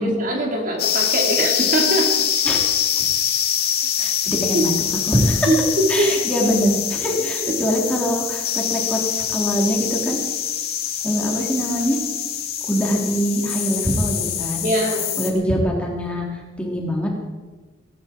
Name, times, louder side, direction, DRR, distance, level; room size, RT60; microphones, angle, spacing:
voice 1, 0.0-2.1 4.5-4.6 5.5-6.1 7.4-7.5 14.6-15.3, right 1 dB, 45° right, 0 dB, 2.9 m, -22 dB
sound 1, 0.8-15.3, left 9 dB, 55° left, 2.1 m, -24 dB
voice 2, 4.0-4.7 5.1-5.5 5.9-10.2 11.0-12.0 12.7-14.6 15.2-17.1, equal, 5° left, -2 dB, 3.3 m, -23 dB
17.0 x 17.0 x 4.5 m, 1.3 s
head